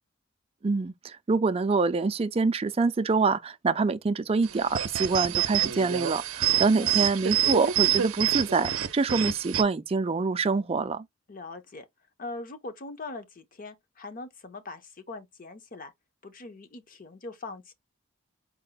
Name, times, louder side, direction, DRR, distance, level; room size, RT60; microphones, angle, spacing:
voice 1, 0.6-11.0, right 4 dB, 30° right, 0.3 m, -26 dB
sound 1, 4.4-9.6, right 11 dB, 80° right, 0.5 m, -27 dB
voice 2, 6.4-6.9 11.3-11.9 12.2-15.9 16.2-17.7, left 3 dB, 40° left, 0.7 m, -41 dB
4.3 x 2.1 x 3.8 m
head